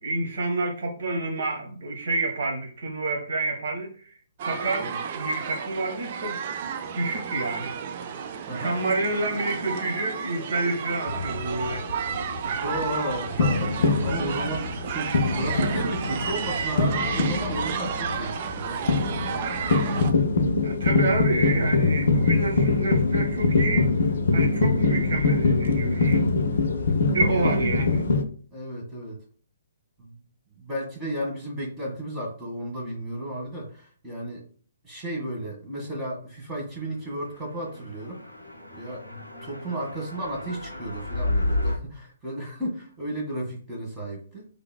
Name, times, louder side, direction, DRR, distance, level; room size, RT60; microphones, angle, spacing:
voice 1, 0.0-6.4 6.9-7.7 8.5-11.9 20.6-23.9 24.3-26.2 27.1-28.0, right 2 dB, 55° right, 1.2 m, -28 dB
sound 1, 4.4-20.1, right 7 dB, 40° right, 0.4 m, -32 dB
sound 2, 11.1-28.2, left 3 dB, 55° left, 0.4 m, -24 dB
voice 2, 12.6-19.0 19.8-20.1 27.3-27.6 28.5-29.2 30.0-30.2 30.6-34.4 34.8-38.2 38.7-39.0 39.4-44.5, right 1 dB, 15° right, 1.4 m, -33 dB
sound 3, 37.3-41.8, left 2 dB, 85° right, 1.7 m, -31 dB
3.7 x 3.3 x 2.2 m
figure-of-eight pair, 130°, 0 cm